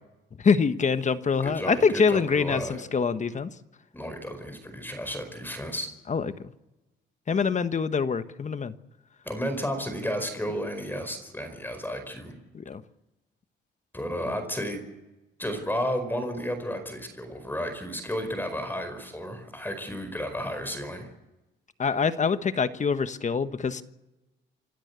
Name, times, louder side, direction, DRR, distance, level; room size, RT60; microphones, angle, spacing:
voice 1, 0.4-3.5 6.1-6.3 7.3-8.7 12.5-12.8 21.8-23.8, left 5 dB, 35° left, 11 dB, 1.3 m, -25 dB
voice 2, 1.4-2.8 3.9-5.9 9.2-12.3 13.9-14.8 15.4-21.1, equal, 10° left, 7 dB, 4.8 m, -32 dB
27.5 x 13.0 x 8.3 m, 1.0 s
cardioid pair, 90°, 20 cm